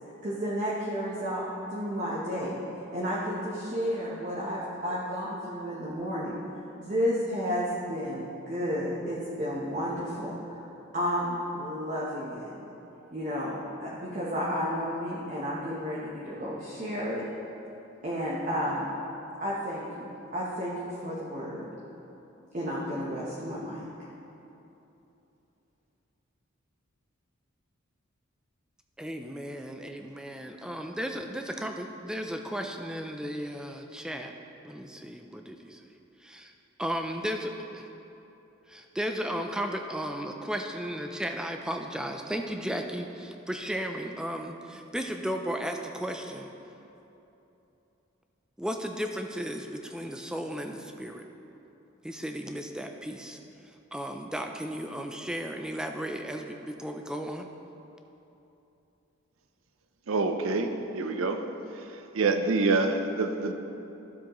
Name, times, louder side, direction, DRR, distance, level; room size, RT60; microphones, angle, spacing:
voice 1, 0.2-1.4 1.7-2.6 2.9-6.3 6.8-10.6 10.9-12.5 13.1-17.2 18.0-18.9 19.4-21.7 22.5-23.8, equal, 40° right, -6 dB, 1.0 m, -32 dB
voice 2, 29.0-34.3 34.6-35.8 36.2-36.5 36.8-37.9 38.7-46.5 48.6-51.2 52.0-53.4 53.9-57.5, equal, 5° right, 4 dB, 0.4 m, -35 dB
voice 3, 60.1-61.4 62.1-63.5, right 3 dB, 90° right, 6 dB, 0.6 m, -26 dB
12.5 x 7.3 x 3.0 m, 3.0 s
head